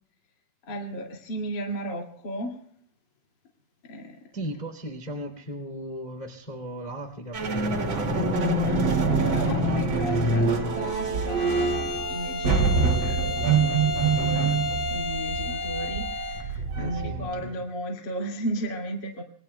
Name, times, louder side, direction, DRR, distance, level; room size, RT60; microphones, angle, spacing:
voice 1, 0.6-2.6 3.8-4.3 8.7-14.5 14.9-19.2, right 1 dB, 55° left, 1 dB, 1.2 m, -35 dB
voice 2, 4.3-8.8 16.7-17.5, equal, 25° left, 4 dB, 0.8 m, -37 dB
sound 1, 7.3-17.4, right 3 dB, 50° right, 1.4 m, -25 dB
Bowed string instrument, 11.3-16.5, left 2 dB, 85° left, 1.1 m, -32 dB
27.5 x 22.0 x 2.2 m, 0.69 s
omnidirectional pair, 6.0 m